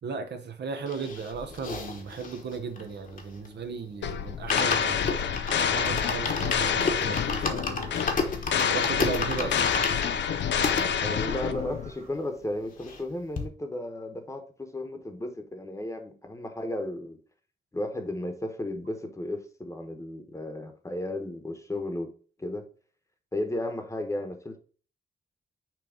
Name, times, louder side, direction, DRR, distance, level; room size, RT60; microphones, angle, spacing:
voice 1, 0.0-7.9 8.6-9.6, right 5 dB, 70° right, 1.0 m, -36 dB
sound 1, 0.9-3.6 4.0-4.1 4.3-10.9 11.4-11.5 11.7-11.8 12.1-13.1 13.4-13.5, left 4 dB, 50° left, 1.2 m, -32 dB
sound 2, 4.0-11.9, left 7 dB, 85° left, 0.5 m, -28 dB
sound 3, 5.0-12.1, right 2 dB, 35° right, 1.6 m, -48 dB
voice 2, 11.0-17.2 17.7-22.1 22.4-22.7 23.3-24.6, left 1 dB, 15° left, 1.0 m, -34 dB
6.0 x 3.1 x 5.1 m
wide cardioid pair, 115°, 18 cm